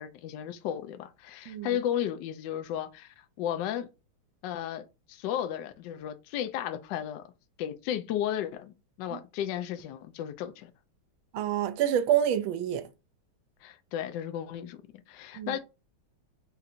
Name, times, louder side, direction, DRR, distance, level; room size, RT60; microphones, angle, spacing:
voice 1, 0.0-3.9 4.4-7.2 7.6-10.7 13.6-14.8 15.1-15.6, left 10 dB, 75° left, 1.1 m, -34 dB
voice 2, 11.3-12.9 15.3-15.6, right 10 dB, 75° right, 1.3 m, -27 dB
3.9 x 2.5 x 4.2 m
omnidirectional pair, 2.3 m